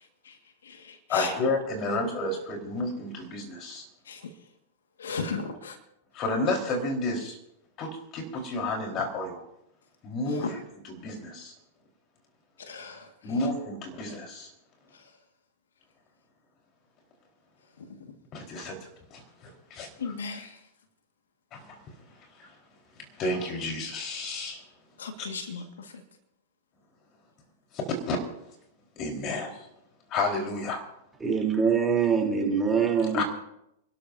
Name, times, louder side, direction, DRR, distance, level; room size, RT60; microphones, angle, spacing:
voice 1, 1.1-3.8 6.1-7.4 7.8-9.4 10.0-11.5 13.2-14.5 18.3-20.1 21.5-21.8 22.4-22.5 23.0-24.6 25.2-25.6 27.9-28.2 29.0-29.7 30.1-30.9 33.1-33.2, left 2 dB, 35° left, 2 dB, 4.2 m, -31 dB
voice 2, 5.0-5.7 12.7-13.0 20.0-20.5 25.0-25.6, left 4 dB, 85° left, 6 dB, 1.7 m, -34 dB
voice 3, 31.2-33.2, right 6 dB, 10° right, 0 dB, 3.4 m, -24 dB
28.5 x 12.5 x 2.7 m, 0.81 s
hypercardioid pair, 115°, 0 cm